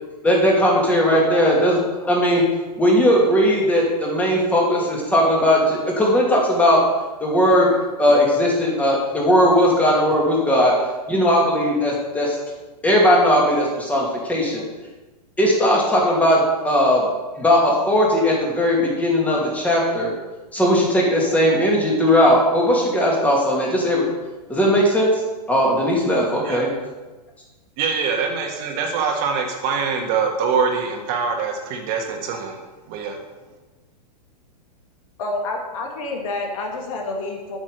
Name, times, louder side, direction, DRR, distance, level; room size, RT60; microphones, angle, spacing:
voice 1, 0.2-2.4 2.8-6.8 7.2-7.7 8.0-10.7 11.1-12.4 12.8-14.6 15.4-17.1 17.4-20.1 20.5-24.1 24.5-25.2 25.5-26.7, equal, 5° left, -3 dB, 2.5 m, -18 dB
voice 2, 27.8-32.6 32.9-33.2, right 5 dB, 40° right, 2 dB, 1.6 m, -24 dB
voice 3, 35.2-37.6, left 2 dB, 55° left, 1 dB, 2.2 m, -28 dB
8.7 x 6.0 x 6.7 m, 1.2 s
hypercardioid pair, 130°, 21 cm